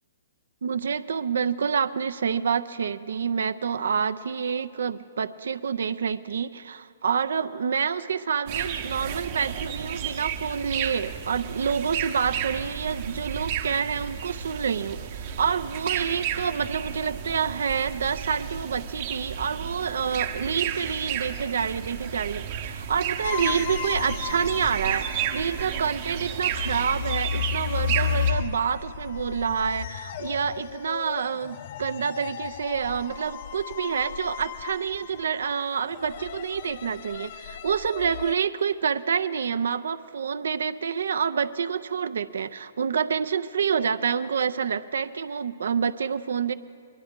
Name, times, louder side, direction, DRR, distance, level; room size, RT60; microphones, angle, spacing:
voice 1, 0.6-46.5, right 6 dB, 70° right, 13 dB, 0.5 m, -28 dB
sound 1, 8.5-28.3, right 9 dB, 45° right, 0.9 m, -32 dB
sound 2, 23.2-38.3, left 9 dB, 50° left, 0.3 m, -34 dB
20.0 x 11.0 x 3.7 m, 2.4 s
hypercardioid pair, 125°, 0 cm